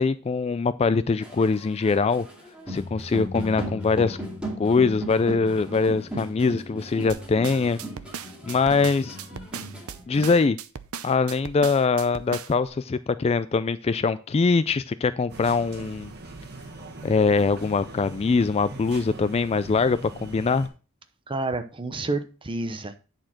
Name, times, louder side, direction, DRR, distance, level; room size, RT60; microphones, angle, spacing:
voice 1, 0.0-2.3 2.7-4.2 4.6-7.8 8.5-9.2 10.1-10.6 11.0-16.1 17.0-20.7, left 4 dB, 30° left, 14 dB, 0.3 m, -23 dB
sound 1, 1.2-10.3, equal, 5° right, 2.5 m, -36 dB
sound 2, 7.1-12.7, right 7 dB, 75° right, 0.7 m, -38 dB
sound 3, 15.3-20.7, right 2 dB, 50° right, 1.8 m, -41 dB
voice 2, 21.3-23.0, right 2 dB, 25° right, 9 dB, 0.9 m, -29 dB
10.0 x 4.4 x 5.9 m, 0.34 s
head